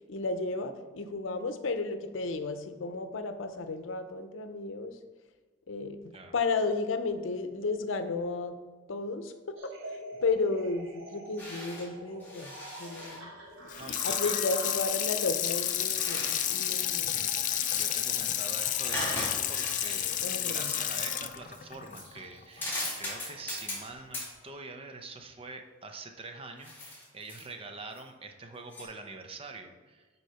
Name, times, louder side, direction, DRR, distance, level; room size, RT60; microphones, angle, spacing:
voice 1, 0.1-5.0 5.7-6.0 6.3-8.6 8.9-9.3 9.6-13.4 14.0-17.1 20.2-20.7, left 3 dB, 85° left, 9 dB, 0.6 m, -33 dB
sound 1, 9.6-23.8, right 1 dB, 85° right, 1.5 m, -48 dB
sound 2, 11.4-11.9 12.2-13.2 15.5-16.9 17.3-18.1 18.8-19.9 20.4-20.5 21.5-21.6 21.9-22.1 22.5-23.9 24.1-24.3 26.6-27.5 28.0-28.1 28.7-28.8, left 1 dB, 10° left, 2.2 m, -39 dB
Water tap faucet / Sink (filling or washing), 13.7-22.9 23.3-23.4, left 11 dB, 40° left, 0.4 m, -31 dB
voice 2, 13.8-14.3 17.0-20.2 20.4-30.1, right 3 dB, 30° right, 5 dB, 0.6 m, -45 dB
6.4 x 4.5 x 5.6 m, 1.4 s
head